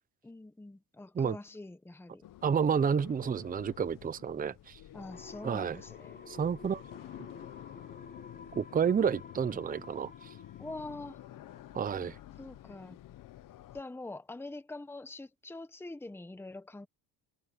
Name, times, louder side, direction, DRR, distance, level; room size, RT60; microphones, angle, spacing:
voice 1, 0.2-2.2 4.9-6.2 10.6-11.2 12.4-13.0 13.7-16.9, left 2 dB, 5° left, 1.2 m, -44 dB
sound 1, 2.2-13.8, left 13 dB, 60° left, 1.1 m, -50 dB
voice 2, 2.4-4.8 5.4-5.8 6.3-6.8 8.6-10.1 11.7-12.2, right 7 dB, 20° right, 0.7 m, -30 dB
sound 2, 5.1-12.8 13.1-13.2, left 4 dB, 25° left, 3.2 m, -52 dB
cardioid pair, 125°, 37 cm